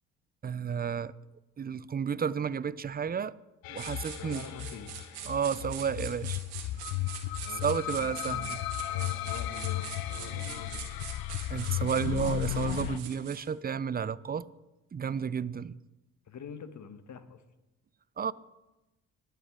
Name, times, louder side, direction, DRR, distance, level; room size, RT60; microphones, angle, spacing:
voice 1, 0.4-1.1 1.6-3.3 3.7-4.5 5.3-6.4 7.6-8.6 11.5-14.5 14.9-15.8 18.2-18.3, right 7 dB, 25° right, 0.5 m, -32 dB
sound 1, 3.6-13.0, left 15 dB, 65° left, 0.7 m, -35 dB
sound 2, 3.8-13.5, right 9 dB, 75° right, 1.9 m, -44 dB
voice 2, 4.2-5.0 7.4-8.6 8.9-10.8 11.6-12.2 16.2-17.4, left 6 dB, 45° left, 1.3 m, -46 dB
20.5 x 8.2 x 3.7 m
hypercardioid pair, 50°, 40 cm